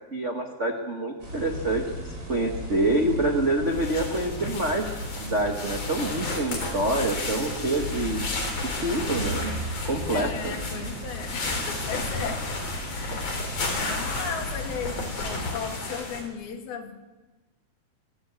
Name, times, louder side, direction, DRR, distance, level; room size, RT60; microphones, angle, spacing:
voice 1, 0.1-1.8 2.3-4.9 5.2-8.2 8.6-9.5 9.9-10.5, right 2 dB, 70° right, 1 dB, 0.6 m, -26 dB
sound 1, 1.2-15.0, equal, 30° right, 6.9 m, -36 dB
sound 2, 3.7-16.2, left 3 dB, 45° left, 4.6 m, -33 dB
voice 2, 10.1-13.4 13.7-17.0, left 6 dB, 80° left, 4 dB, 4.0 m, -36 dB
23.5 x 14.5 x 8.4 m, 1.2 s
omnidirectional pair, 4.3 m